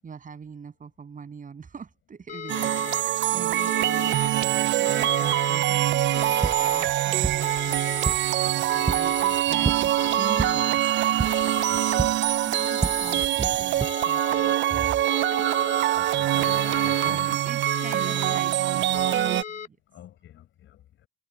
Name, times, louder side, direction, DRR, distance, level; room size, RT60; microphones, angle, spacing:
voice 1, 0.0-7.8 8.0-11.0 11.8-12.0 12.4-15.0 15.3-15.5 15.9-19.8, right 6 dB, 40° right, 7.8 m, -42 dB
sound 1, 2.3-3.0 3.6-4.3 4.8-5.6 6.1-6.9 7.4-8.1 8.7-9.4 10.0-10.7 11.2-12.0 12.5-13.3 13.8-14.5 15.1-15.8 16.4-17.1 17.7-18.4 18.9-19.7, left 7 dB, 40° left, 2.0 m, -37 dB
sound 2, 2.5-19.4, right 13 dB, 70° right, 0.5 m, -24 dB
sound 3, 6.1-13.9, right 4 dB, 20° right, 0.7 m, -32 dB
voice 2, 11.7-12.2 15.9-17.4 19.9-21.1, left 12 dB, 80° left, 5.3 m, -46 dB
cardioid pair, 90°, 20 cm